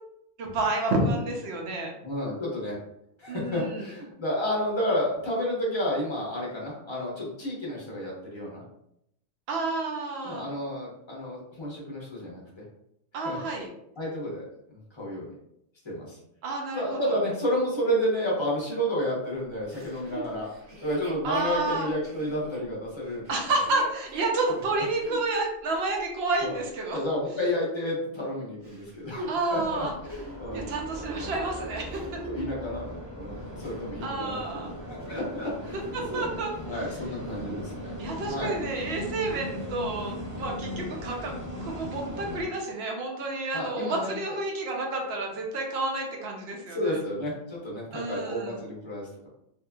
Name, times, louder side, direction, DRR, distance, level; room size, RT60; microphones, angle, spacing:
voice 1, 0.4-1.9 3.3-3.9 9.5-10.5 13.1-13.7 16.4-17.2 21.2-21.9 23.3-27.0 29.3-29.9 30.5-32.2 34.0-34.7 35.9-36.8 38.0-41.3 41.6-47.0 47.9-48.6, right 2 dB, 60° right, 0 dB, 0.7 m, -30 dB
voice 2, 2.0-2.8 3.2-8.6 10.2-12.4 13.2-13.4 14.0-15.3 15.8-16.2 16.7-23.2 25.0-25.1 26.4-26.6 26.9-30.6 31.0-31.1 32.2-35.8 36.1-36.2 36.6-37.9 38.3-38.5 43.5-44.1 46.7-49.3, equal, 25° left, -4 dB, 0.7 m, -31 dB
Chuckle chortle, 19.7-25.3 25.9-26.0 28.6-32.6 33.2-34.7 35.0-35.3 35.7-36.4 36.7-36.8 37.2-37.7 38.3-38.4, right 3 dB, 85° right, 1.3 m, -42 dB
sound 1, 29.6-42.4, equal, 20° right, 0.5 m, -38 dB
2.7 x 2.4 x 2.2 m, 0.77 s
omnidirectional pair, 1.4 m